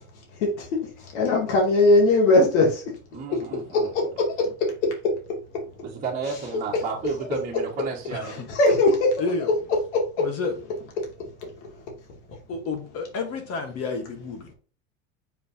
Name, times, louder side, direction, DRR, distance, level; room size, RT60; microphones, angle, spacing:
voice 1, 1.1-2.8 3.3-3.4 3.7-4.5 8.5-9.1 9.9-10.3, left 2 dB, 80° left, 2.7 m, -19 dB
voice 2, 3.1-3.9 5.8-8.5, right 5 dB, 25° right, 1.6 m, -32 dB
voice 3, 8.1-8.5 9.2-9.5 10.2-10.6 12.5-14.5, left 3 dB, 45° left, 1.5 m, -30 dB
7.1 x 5.1 x 2.8 m
supercardioid pair, 130°, 34 cm